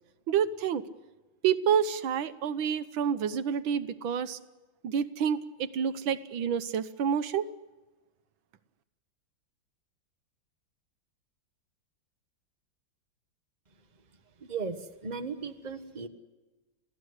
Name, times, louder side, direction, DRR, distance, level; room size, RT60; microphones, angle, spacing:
voice 1, 0.3-0.9 1.4-4.4 4.8-7.5, right 8 dB, 90° right, 13 dB, 1.8 m, -28 dB
voice 2, 15.0-16.1, right 5 dB, 25° right, 8 dB, 1.3 m, -35 dB
27.0 x 16.5 x 8.1 m, 1.2 s
omnidirectional pair, 2.1 m